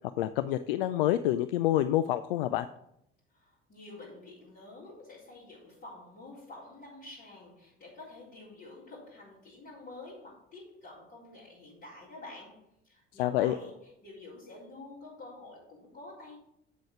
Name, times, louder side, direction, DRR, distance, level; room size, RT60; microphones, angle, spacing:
voice 1, 0.2-2.7 13.2-13.6, left 13 dB, 65° left, 13 dB, 0.4 m, -27 dB
voice 2, 3.3-16.4, left 2 dB, 35° left, -10 dB, 4.0 m, -49 dB
8.4 x 7.6 x 4.8 m, 0.77 s
figure-of-eight pair, 60°, 30 cm